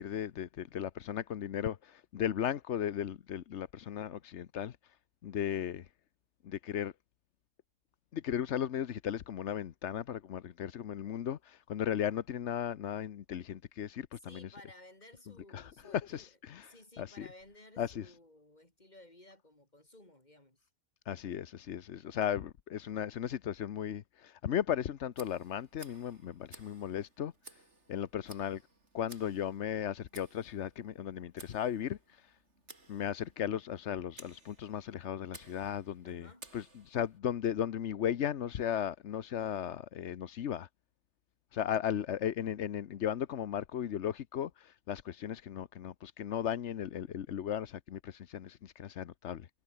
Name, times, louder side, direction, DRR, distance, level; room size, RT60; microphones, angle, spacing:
voice 1, 0.0-4.8 5.2-5.9 6.4-6.9 8.1-14.5 15.5-17.3 17.8-18.1 21.1-27.3 27.9-28.6 28.9-32.3 32.9-40.7 41.5-49.5, left 9 dB, 85° left, 1.1 m, -36 dB
voice 2, 14.3-16.3 16.7-20.7 36.0-36.5, left 1 dB, 40° left, 5.2 m, -56 dB
Tick, 25.1-37.2, right 3 dB, 85° right, 4.1 m, -57 dB
omnidirectional pair, 1.2 m